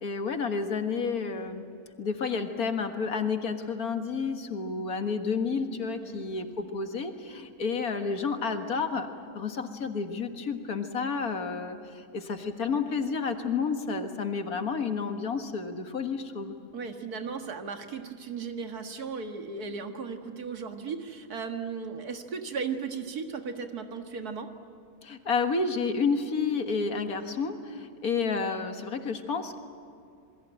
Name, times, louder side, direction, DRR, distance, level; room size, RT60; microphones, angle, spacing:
voice 1, 0.0-1.6 2.0-9.1 9.3-16.5 25.0-29.6, left 5 dB, 75° left, 6 dB, 2.1 m, -30 dB
voice 2, 16.7-24.5, right 5 dB, 80° right, 5 dB, 2.2 m, -36 dB
27.5 x 21.5 x 9.0 m, 2.4 s
omnidirectional pair, 1.6 m